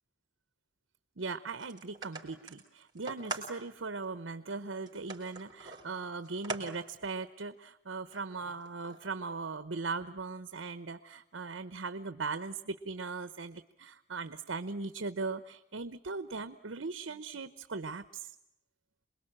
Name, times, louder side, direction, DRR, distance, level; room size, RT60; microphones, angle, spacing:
voice 1, 1.2-18.4, right 4 dB, 75° right, 12 dB, 0.9 m, -39 dB
sound 1, 1.6-3.5 4.0-4.1 4.9-6.6 7.0-7.1 8.1-9.2, right 2 dB, 20° right, 4.1 m, -43 dB
27.5 x 21.5 x 8.8 m, 0.86 s
head